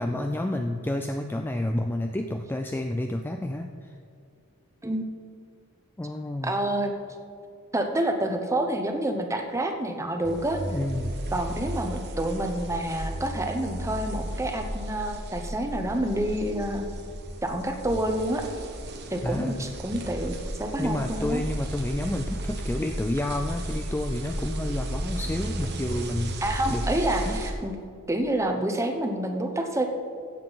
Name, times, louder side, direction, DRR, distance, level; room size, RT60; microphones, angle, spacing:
voice 1, 0.0-3.9 6.0-6.6 10.7-11.1 19.2-19.8 20.8-26.4 26.7-26.8 27.3-27.4, left 1 dB, 10° left, 5 dB, 0.3 m, -30 dB
voice 2, 6.4-6.9 7.7-10.6 11.3-16.9 17.4-18.5 19.1-21.4 26.4-27.7 28.1-29.8, right 1 dB, 15° right, 5 dB, 0.8 m, -28 dB
sound 1, 10.2-27.5, right 1 dB, 50° right, 1.1 m, -34 dB
16.0 x 7.6 x 4.0 m, 2.3 s
head